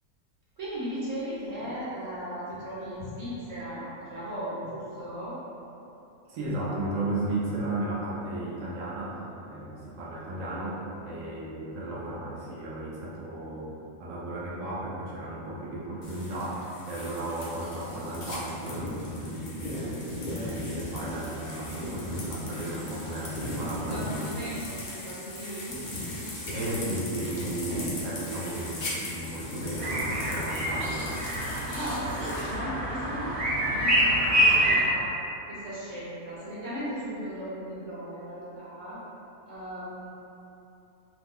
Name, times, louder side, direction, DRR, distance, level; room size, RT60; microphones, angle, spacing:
voice 1, 0.6-5.3 23.9-24.6 24.9-25.7 31.7-35.1 35.5-39.0 39.5-40.1, equal, 35° right, -10 dB, 0.7 m, -37 dB
voice 2, 6.3-13.7 14.0-20.0 20.3-24.3 26.5-31.1, right 1 dB, 70° right, -6 dB, 1.0 m, -34 dB
sound 1, 16.0-32.6, left 1 dB, 50° left, 0.6 m, -37 dB
sound 2, 29.8-34.8, equal, 55° right, 1.3 m, -26 dB
3.0 x 2.0 x 3.5 m, 2.9 s
omnidirectional pair, 1.5 m